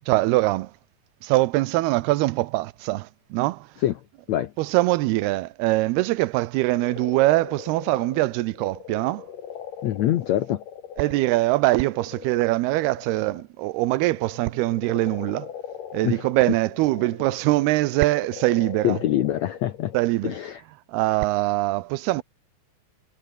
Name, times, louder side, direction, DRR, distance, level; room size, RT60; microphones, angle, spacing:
voice 1, 0.1-0.7 1.2-3.7 4.6-9.2 11.0-15.5 15.9-19.0 19.9-20.3 20.9-22.2, right 19 dB, 90° right, 2.7 m, -23 dB
sound 1, 6.8-13.4 13.8-20.2, left 8 dB, 60° left, 3.8 m, -40 dB
voice 2, 9.8-10.6 16.0-16.2 18.8-19.9 20.2-20.6, left 12 dB, 80° left, 1.6 m, -24 dB
omnidirectional pair, 4.5 m